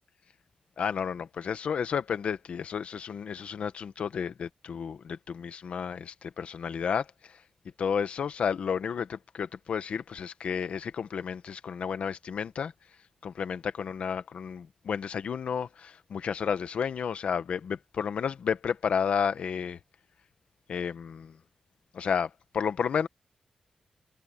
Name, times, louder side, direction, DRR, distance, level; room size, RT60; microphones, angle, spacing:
voice 1, 0.8-7.4 7.8-12.7 13.2-19.8 20.7-21.4 21.9-23.1, left 7 dB, 75° left, 1.3 m, -32 dB
wide cardioid pair, 170°, 2 cm